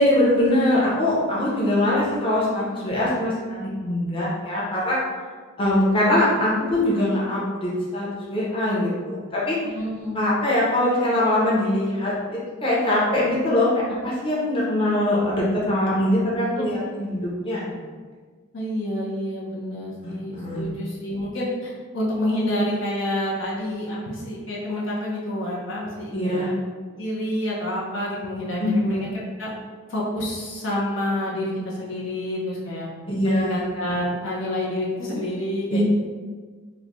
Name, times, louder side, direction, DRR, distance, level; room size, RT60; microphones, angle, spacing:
voice 1, 0.0-5.0 5.6-9.6 10.1-17.7 20.0-20.6 26.1-26.5 28.6-29.0 33.1-33.6 35.7-35.8, left 1 dB, 25° left, -7 dB, 0.8 m, -22 dB
voice 2, 9.7-10.2 16.6-16.7 18.5-26.5 26.9-29.5 29.9-32.9 33.2-35.8, left 1 dB, 60° left, -5 dB, 0.6 m, -28 dB
3.2 x 2.1 x 3.9 m, 1.5 s
head